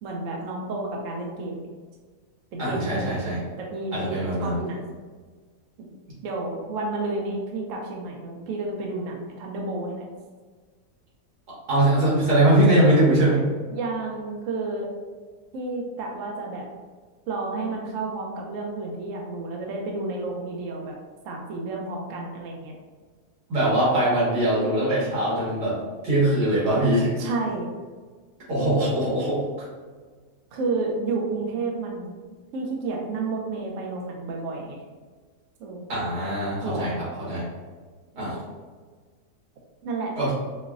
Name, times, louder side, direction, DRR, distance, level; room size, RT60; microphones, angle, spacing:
voice 1, 0.0-1.7 2.5-3.1 3.6-4.8 5.8-5.9 6.2-10.0 13.7-14.9 15.5-16.7 17.3-20.9 21.2-22.8 27.2-27.7 30.5-32.2 32.5-34.8 35.6-35.9 36.6-37.0 38.1-38.4 39.8-40.1, right 3 dB, 65° right, 0 dB, 0.9 m, -31 dB
voice 2, 2.6-3.4 3.9-4.6 11.7-13.4 23.5-27.2 28.5-29.4 35.9-37.5 38.2-38.4 40.2-40.3, right 1 dB, 90° right, -8 dB, 2.1 m, -22 dB
5.2 x 2.1 x 2.4 m, 1.5 s
omnidirectional pair, 1.7 m